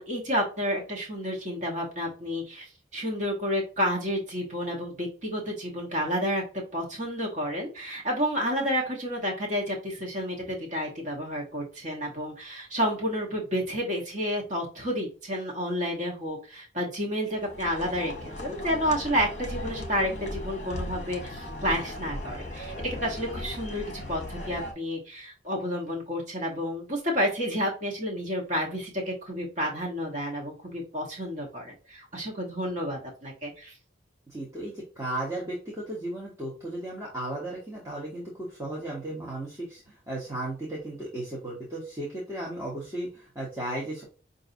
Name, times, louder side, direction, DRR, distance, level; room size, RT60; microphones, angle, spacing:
voice 1, 0.0-6.4 6.7-33.8, equal, 40° right, -1 dB, 1.2 m, -30 dB
sound 1, 17.3-24.7, left 1 dB, 40° left, 1.0 m, -37 dB
voice 2, 34.3-44.0, right 1 dB, 15° right, -5 dB, 1.1 m, -35 dB
5.5 x 2.6 x 2.6 m, 0.36 s
head